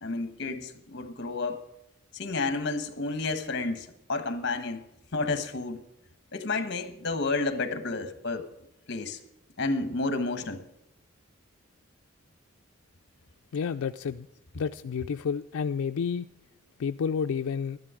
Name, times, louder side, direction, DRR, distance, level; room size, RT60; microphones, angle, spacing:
voice 1, 0.0-1.6 2.1-4.8 5.1-5.8 6.3-8.5 8.9-9.2 9.6-10.6, left 3 dB, 55° left, 9 dB, 1.2 m, -31 dB
voice 2, 13.5-14.3 14.5-16.3 16.8-17.8, left 6 dB, 80° left, 8 dB, 0.4 m, -30 dB
12.0 x 11.0 x 4.9 m, 0.87 s
head